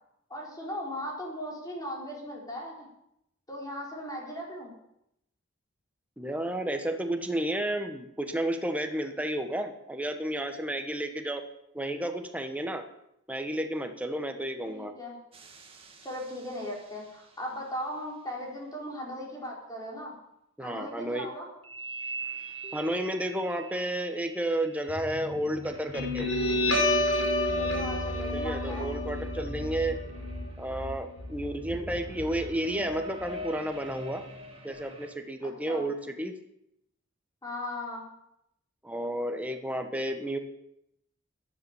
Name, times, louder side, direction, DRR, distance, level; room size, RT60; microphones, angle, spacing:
voice 1, 0.3-2.9 3.5-4.7 14.6-15.2 16.0-20.1 20.6-21.5 27.6-28.9 35.4-35.9 37.4-38.0, equal, 20° left, -3 dB, 4.7 m, -38 dB
voice 2, 6.2-11.4 11.7-12.8 13.3-14.9 20.6-21.3 22.7-26.3 28.3-30.0 30.6-34.2 34.6-36.3 38.8-40.4, right 1 dB, 5° right, 5 dB, 1.3 m, -32 dB
sound 1, 15.3-17.3 21.6-28.9 29.4-31.0 31.6-35.1, right 1 dB, 30° right, 1.9 m, -43 dB
Guitar, 25.9-32.9, left 1 dB, 80° left, 5.4 m, -30 dB
13.5 x 11.0 x 7.2 m, 0.80 s
head